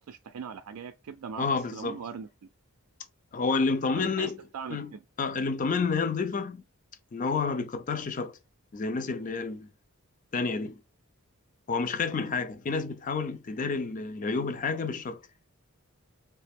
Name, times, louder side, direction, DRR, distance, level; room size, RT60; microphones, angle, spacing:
voice 1, 0.1-1.5 1.7-2.3 3.9-5.0, right 6 dB, 90° right, 0.4 m, -40 dB
voice 2, 1.4-2.0 3.3-4.4 4.7-6.6 7.1-8.4 8.7-9.7 10.3-10.8 11.7-15.2, left 4 dB, 35° left, 0.4 m, -29 dB
3.2 x 2.9 x 3.4 m
head